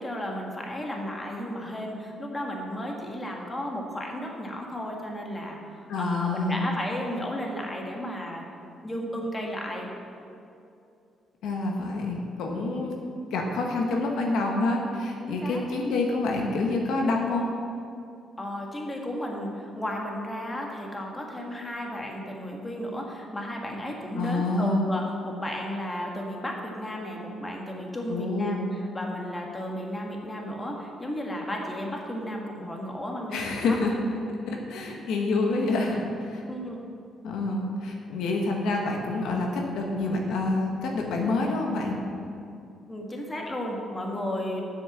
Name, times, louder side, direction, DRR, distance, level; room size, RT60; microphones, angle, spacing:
voice 1, 0.0-5.6 6.0-8.4 8.8-9.9 15.2-15.6 18.4-28.6 28.9-33.8 36.5-36.8 42.9-44.6, equal, 20° left, 0 dB, 1.7 m, -33 dB
voice 2, 5.9-6.8 11.4-12.9 13.3-17.5 24.1-24.9 28.1-28.7 33.3-34.0 34.5-36.4 37.2-42.0, left 2 dB, 80° left, 0 dB, 1.2 m, -27 dB
8.0 x 6.1 x 7.3 m, 2.6 s
cardioid pair, 90°, 0 cm